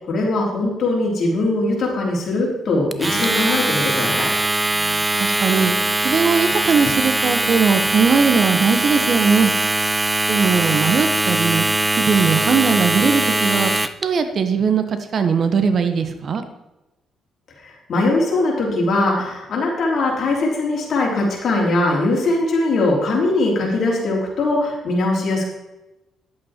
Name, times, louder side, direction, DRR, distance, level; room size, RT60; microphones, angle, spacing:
voice 1, 0.0-4.3 17.9-25.5, left 2 dB, 55° left, -2 dB, 3.8 m, -20 dB
Domestic sounds home sounds, 2.9-14.0, right 2 dB, 15° right, 0.6 m, -21 dB
voice 2, 4.8-5.7 6.0-9.5 10.3-11.6 12.0-13.7 14.0-16.4, right 5 dB, 50° right, 9 dB, 1.1 m, -19 dB
11.0 x 8.1 x 4.5 m, 1.0 s
cardioid pair, 90°, 0 cm